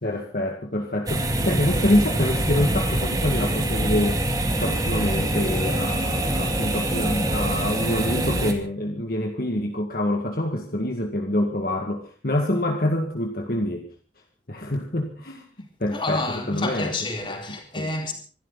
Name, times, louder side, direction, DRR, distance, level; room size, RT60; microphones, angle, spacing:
voice 1, 0.0-4.2 4.6-13.9 14.5-16.9 17.8-17.9, left 1 dB, 55° left, 2.0 m, -26 dB
sound 1, 1.1-8.5, right 1 dB, 20° right, 2.3 m, -24 dB
voice 2, 15.9-18.1, left 2 dB, 30° left, 4.1 m, -29 dB
25.5 x 12.5 x 4.0 m
head